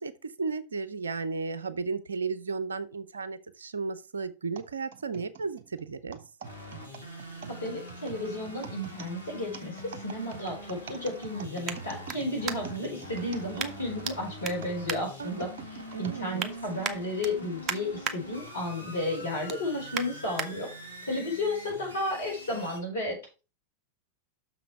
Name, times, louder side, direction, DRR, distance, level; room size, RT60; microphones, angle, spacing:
voice 1, 0.0-6.2 15.2-15.5 15.9-16.4, right 4 dB, 70° right, 0.7 m, -34 dB
sound 1, 4.5-14.1 14.6-16.2 16.8-16.9 17.8-18.0, right 7 dB, 55° right, 1.1 m, -45 dB
sound 2, 6.4-22.8, equal, 90° left, 1.7 m, -44 dB
voice 2, 7.5-20.7 21.1-23.2, left 1 dB, 70° left, 4.5 m, -33 dB
sound 3, 11.6-12.9 13.6-14.2 14.4-15.7 16.1-16.5 16.8-18.2 18.6-18.9 19.2-20.5 21.0-21.1, right 6 dB, 30° right, 0.9 m, -37 dB
6.5 x 6.0 x 4.6 m
figure-of-eight pair, 90°, 0 cm